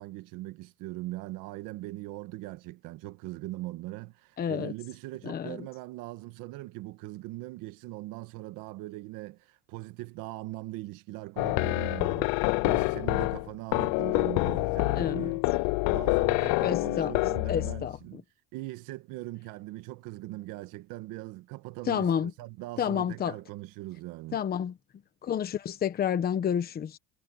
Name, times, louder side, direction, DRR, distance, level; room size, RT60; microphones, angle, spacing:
voice 1, 0.0-15.4 15.9-18.2 18.5-24.4, right 18 dB, 75° right, 1.5 m, -40 dB
voice 2, 4.4-4.7 5.2-5.7 14.9-15.3 16.6-17.1 17.5-18.0 21.9-22.3 22.8-23.4 24.3-24.7 25.2-27.0, left 8 dB, 30° left, 1.1 m, -29 dB
sound 1, 11.4-17.9, left 26 dB, 85° left, 0.5 m, -27 dB
cardioid pair, 160°, 33 cm